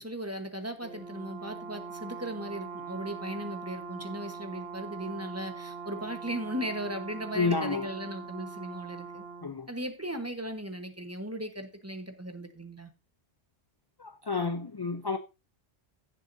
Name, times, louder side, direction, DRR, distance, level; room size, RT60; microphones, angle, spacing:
voice 1, 0.0-9.2 9.7-12.9, right 1 dB, 15° right, 1.1 m, -37 dB
Brass instrument, 0.8-9.5, right 5 dB, 60° right, 1.2 m, -42 dB
voice 2, 7.3-7.9 9.4-9.7 14.0-15.2, left 4 dB, 30° left, 0.4 m, -30 dB
16.0 x 7.4 x 2.7 m
omnidirectional pair, 1.2 m